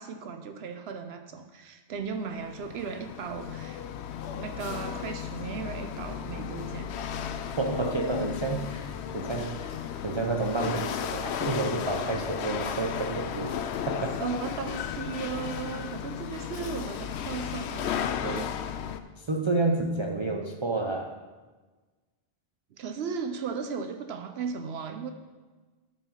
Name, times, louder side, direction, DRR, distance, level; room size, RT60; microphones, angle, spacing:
voice 1, 0.0-3.8 4.3-6.9 14.2-18.5 22.8-25.1, right 6 dB, 75° right, 7 dB, 0.9 m, -36 dB
Chatter / Hiss / Rattle, 2.1-19.0, left 8 dB, 85° left, 0.9 m, -34 dB
voice 2, 7.6-9.7 10.0-13.5 13.9-14.2 19.2-21.2, right 3 dB, 35° right, 2 dB, 0.5 m, -30 dB
13.0 x 4.6 x 5.5 m, 1.3 s
omnidirectional pair, 1.1 m